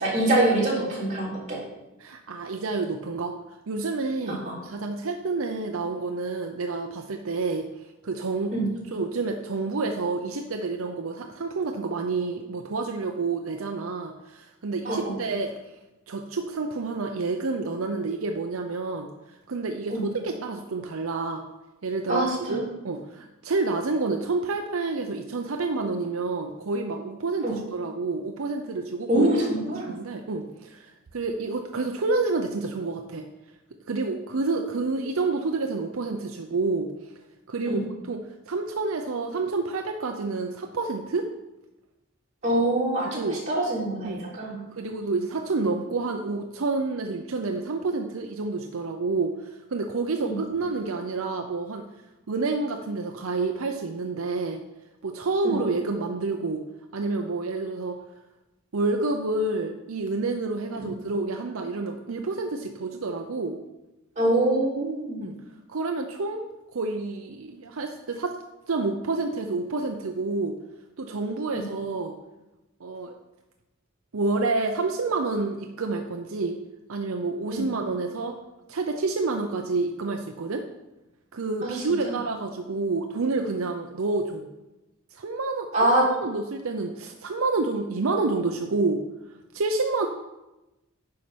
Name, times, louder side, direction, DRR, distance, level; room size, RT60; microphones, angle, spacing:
voice 1, 0.0-1.6 4.3-4.6 8.5-8.7 14.8-15.1 19.9-20.1 22.1-22.6 27.4-27.6 29.1-29.9 37.7-37.8 42.4-44.6 50.2-50.4 55.4-55.6 64.2-65.3 71.5-71.7 77.5-77.7 81.6-82.2 85.7-86.1, right 1 dB, 35° right, -6 dB, 3.4 m, -25 dB
voice 2, 2.0-3.3 3.7-7.7 8.0-8.5 8.9-15.5 16.1-19.1 19.5-21.4 21.8-29.3 29.9-33.2 33.9-36.9 37.5-37.8 38.1-38.2 38.5-41.3 43.1-43.4 44.0-44.2 44.7-51.8 52.3-54.6 55.0-56.6 56.9-58.0 58.7-63.6 65.2-65.3 65.7-66.4 66.7-68.4 68.7-70.5 71.0-72.1 72.8-73.1 74.1-76.6 76.9-78.4 78.7-80.6 81.3-84.5 85.1-89.0 89.5-90.1, right 3 dB, 75° right, 4 dB, 0.6 m, -29 dB
9.5 x 5.8 x 5.1 m, 1.0 s
head